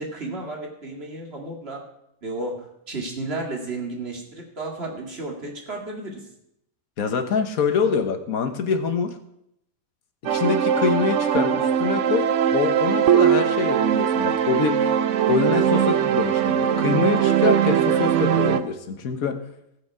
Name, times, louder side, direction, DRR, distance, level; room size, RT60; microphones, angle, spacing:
voice 1, 0.0-1.8 2.2-6.2, right 2 dB, 45° right, 0 dB, 2.5 m, -33 dB
voice 2, 7.0-9.1 10.3-14.8 15.3-19.4, left 5 dB, 75° left, 7 dB, 1.6 m, -25 dB
sound 1, 10.2-18.6, right 9 dB, 65° right, 0.9 m, -20 dB
18.5 x 6.7 x 4.8 m, 0.79 s
omnidirectional pair, 1.5 m